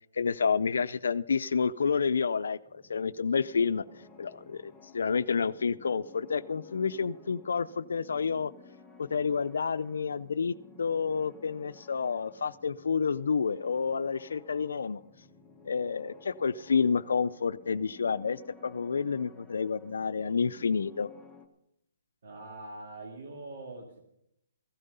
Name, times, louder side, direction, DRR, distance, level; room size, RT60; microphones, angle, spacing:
voice 1, 0.1-3.8 4.2-8.5 9.0-15.0 15.6-21.1, left 5 dB, 80° left, 14 dB, 0.5 m, -29 dB
sound 1, 2.7-21.5, left 4 dB, ahead, 1.3 m, -55 dB
voice 2, 22.2-24.0, right 2 dB, 65° right, 1 dB, 2.4 m, -43 dB
15.5 x 11.0 x 5.5 m, 0.80 s
hypercardioid pair, 155°, 0 cm